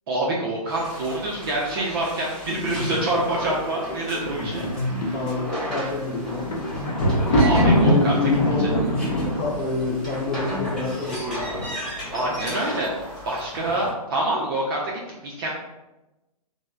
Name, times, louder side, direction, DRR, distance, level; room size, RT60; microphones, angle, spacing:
voice 1, 0.1-4.7 7.4-8.1 8.6-8.7 12.1-12.9 13.2-15.5, right 1 dB, 35° right, -3 dB, 0.4 m, -26 dB
sound 1, 0.7-13.9, equal, 5° left, 0.8 m, -35 dB
sound 2, 2.6-11.2, left 2 dB, 85° left, 0.8 m, -32 dB
voice 2, 5.1-6.5 7.8-11.2, left 3 dB, 20° left, -4 dB, 0.4 m, -27 dB
Thunder, 6.0-11.1 11.8-12.3 12.6-12.7, equal, 50° left, 0.7 m, -22 dB
2.9 x 2.0 x 2.3 m, 1.0 s
hypercardioid pair, 140°, 20 cm